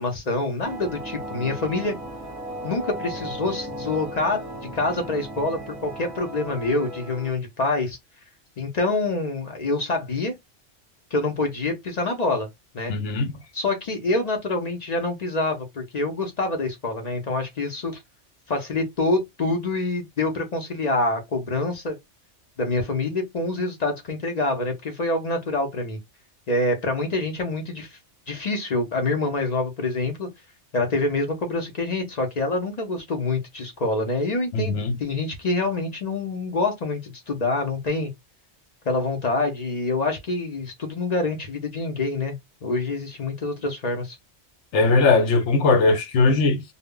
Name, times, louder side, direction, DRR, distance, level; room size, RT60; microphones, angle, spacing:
voice 1, 0.0-2.0 2.6-4.4 4.7-8.0 8.6-10.3 11.1-12.5 12.7-12.9 13.5-18.0 18.5-22.0 22.6-26.0 26.5-28.0 28.3-30.3 30.7-38.1 38.9-44.2, left 2 dB, 50° left, 0.5 m, -26 dB
sound 1, 0.6-7.3, right 1 dB, 20° right, 0.8 m, -36 dB
voice 2, 12.9-13.3 34.5-35.0 44.7-46.6, left 3 dB, 75° left, 0.9 m, -19 dB
2.0 x 2.0 x 3.5 m
omnidirectional pair, 1.2 m